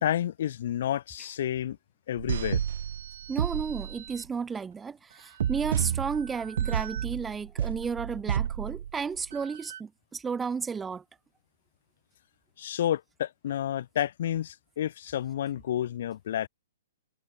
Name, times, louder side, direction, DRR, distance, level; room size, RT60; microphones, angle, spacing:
voice 1, 0.0-1.8 2.1-2.6 12.6-16.5, left 11 dB, 55° left, 1.1 m, -30 dB
sound 1, 2.2-4.2 5.4-9.8, right 9 dB, 65° right, 0.8 m, -31 dB
voice 2, 3.3-11.0, right 5 dB, 10° right, 0.5 m, -33 dB
hypercardioid pair, 160°, 0 cm